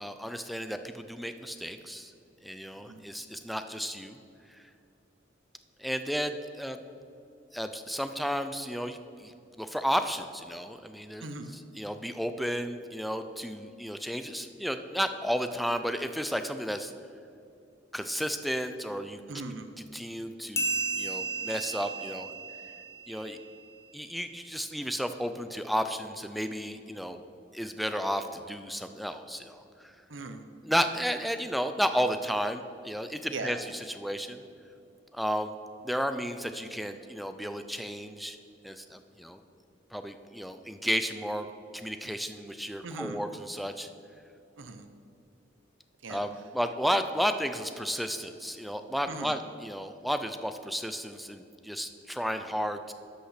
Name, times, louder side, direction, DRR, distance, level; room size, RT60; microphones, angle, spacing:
voice 1, 0.0-2.1 2.4-4.2 5.8-6.8 7.5-11.2 11.8-16.9 17.9-19.2 19.9-22.3 23.1-23.4 23.9-27.2 27.5-29.9 30.7-33.6 34.0-34.4 35.1-35.6 35.8-38.4 38.6-39.4 39.9-41.5 41.7-43.9 46.1-52.9, equal, ahead, 9 dB, 0.4 m, -33 dB
voice 2, 2.8-3.1 11.2-11.5 19.3-19.7 30.1-30.5 33.3-33.6 42.8-43.2 44.6-44.9 46.0-46.2 49.1-49.4, right 3 dB, 70° right, 8 dB, 0.8 m, -39 dB
sound 1, 20.6-23.6, right 3 dB, 15° left, 0.8 m, -34 dB
12.5 x 5.7 x 5.8 m, 2.7 s
head